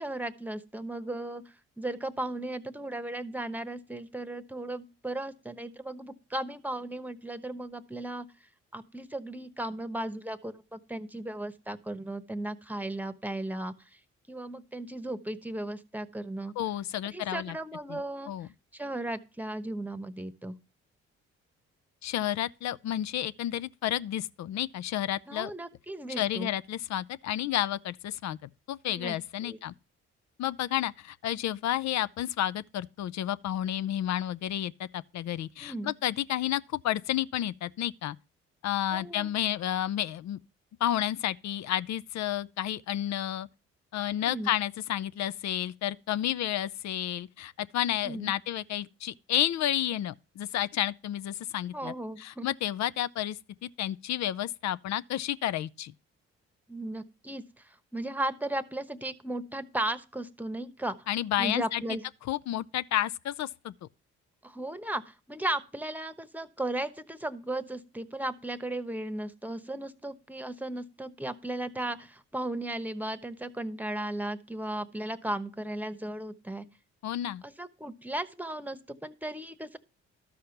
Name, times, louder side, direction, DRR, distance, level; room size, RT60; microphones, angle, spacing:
voice 1, 0.0-1.4 1.8-8.3 8.7-13.7 14.3-16.5 17.1-18.3 18.7-20.6 25.3-26.5 28.9-29.2 29.4-29.6 35.6-35.9 38.9-39.3 44.2-44.5 48.0-48.3 51.7-52.5 56.7-61.0 61.4-62.0 64.4-76.7 77.6-79.8, right 1 dB, 5° right, 1.0 m, -36 dB
voice 2, 16.6-17.6 17.9-18.0 18.3-18.5 22.0-25.5 26.2-29.7 30.4-38.2 38.6-40.4 40.8-43.5 43.9-55.9 61.1-62.0 62.3-63.7 77.0-77.4, left 12 dB, 65° left, 0.6 m, -31 dB
12.5 x 5.0 x 5.8 m
supercardioid pair, 55°, 29 cm